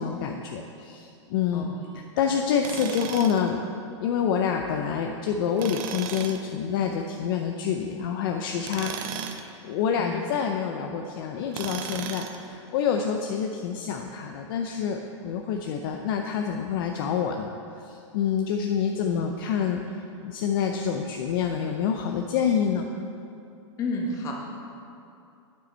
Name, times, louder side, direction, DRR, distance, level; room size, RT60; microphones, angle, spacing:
voice 1, 0.0-1.7 1.9-3.6 4.0-22.9, left 7 dB, 45° left, 3 dB, 0.5 m, -27 dB
Tools, 2.6-3.5 5.6-6.4 8.6-9.5 11.5-12.5, right 8 dB, 45° right, 0.6 m, -35 dB
voice 2, 23.8-24.3, left 2 dB, 20° left, -1 dB, 1.2 m, -31 dB
9.1 x 7.0 x 4.3 m, 2.6 s
supercardioid pair, 155°, 16 cm